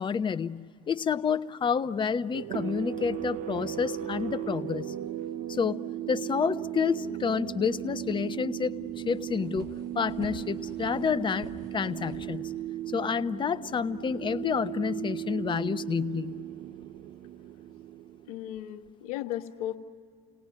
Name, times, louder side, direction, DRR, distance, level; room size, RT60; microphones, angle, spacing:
voice 1, 0.0-4.9 5.5-5.8 6.1-9.7 9.9-12.4 12.9-16.3, left 6 dB, 25° left, 10 dB, 0.9 m, -29 dB
sound 1, 2.3-18.6, right 12 dB, 40° right, 0.6 m, -37 dB
sound 2, 8.4-8.5 8.8-13.0, right 3 dB, 70° right, 5.6 m, -47 dB
voice 2, 18.3-19.8, left 13 dB, 70° left, 5 dB, 1.5 m, -35 dB
30.0 x 19.0 x 9.6 m, 2.2 s
hypercardioid pair, 80°, 19 cm